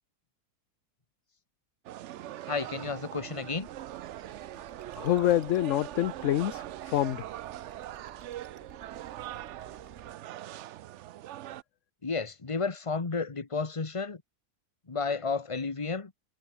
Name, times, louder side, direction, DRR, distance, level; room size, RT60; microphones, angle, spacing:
sound 1, 1.8-11.6, right 13 dB, 70° right, 0.7 m, -42 dB
voice 1, 2.5-3.7 12.0-14.2 14.9-16.1, left 4 dB, 20° left, 1.3 m, -32 dB
sound 2, 3.4-10.2, right 3 dB, 30° right, 2.0 m, -55 dB
voice 2, 4.9-7.3, left 13 dB, 65° left, 0.8 m, -27 dB
omnidirectional pair, 1.7 m